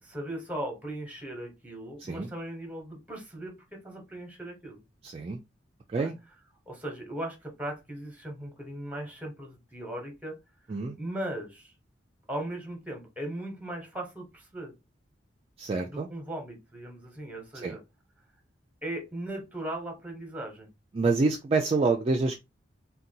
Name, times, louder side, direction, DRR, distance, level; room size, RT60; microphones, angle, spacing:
voice 1, 0.0-4.8 6.0-6.1 6.7-10.4 10.9-11.7 12.3-14.7 15.8-17.8 18.8-20.7, right 1 dB, 10° right, 1.0 m, -38 dB
voice 2, 5.0-5.4 5.9-6.2 10.7-11.0 15.6-16.1 17.6-17.7 20.9-22.4, right 3 dB, 30° right, 0.3 m, -27 dB
3.9 x 2.2 x 2.7 m
head